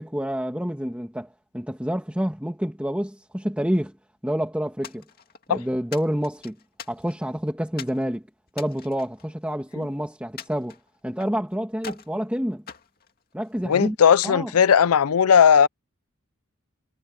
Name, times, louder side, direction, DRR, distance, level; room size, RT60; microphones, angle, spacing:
voice 1, 0.0-3.9 4.2-5.0 5.5-6.6 6.9-8.2 8.5-10.8 11.0-12.6 13.3-14.0 14.2-14.5, equal, 5° right, 2.2 m, -28 dB
sound 1, 4.8-5.5 5.9-7.3 7.8-8.0 8.5-9.8 10.4-11.4 11.8-12.2 12.7-13.7, left 6 dB, 45° left, 2.3 m, -42 dB
voice 2, 13.6-15.7, left 7 dB, 85° left, 0.5 m, -17 dB
head